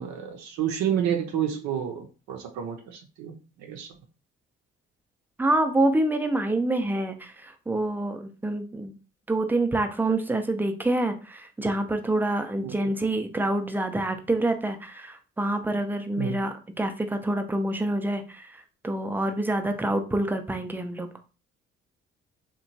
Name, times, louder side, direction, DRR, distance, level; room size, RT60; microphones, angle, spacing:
voice 1, 0.0-3.9 12.6-12.7 16.2-16.4, right 9 dB, 70° right, 0.5 m, -30 dB
voice 2, 5.4-8.9 9.3-21.1, right 1 dB, 5° right, 0.4 m, -27 dB
2.8 x 2.2 x 2.7 m
hypercardioid pair, 50°, 29 cm